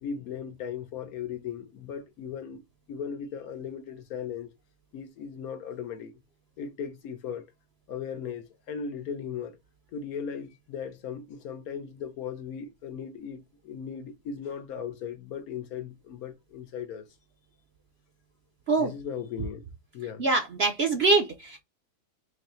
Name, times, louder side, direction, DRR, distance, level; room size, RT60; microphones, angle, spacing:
voice 1, 0.0-2.6 2.9-4.5 4.9-6.2 6.6-7.5 7.9-9.6 9.9-17.1 18.8-19.6 19.9-20.2, left 7 dB, 70° left, 1.1 m, -37 dB
voice 2, 20.2-21.6, right 3 dB, 55° right, 0.7 m, -24 dB
4.0 x 2.7 x 3.1 m
omnidirectional pair, 1.7 m